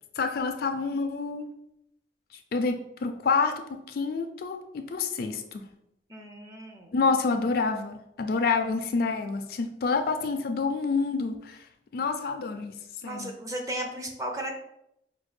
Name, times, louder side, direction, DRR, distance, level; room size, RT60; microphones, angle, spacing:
voice 1, 0.2-1.5 2.5-5.6 6.9-11.6 11.9-12.8 13.0-13.3, left 4 dB, 55° left, 6 dB, 0.4 m, -28 dB
voice 2, 6.1-7.0 13.0-14.6, right 1 dB, 20° right, 2 dB, 0.5 m, -35 dB
5.0 x 2.2 x 3.2 m, 0.79 s
head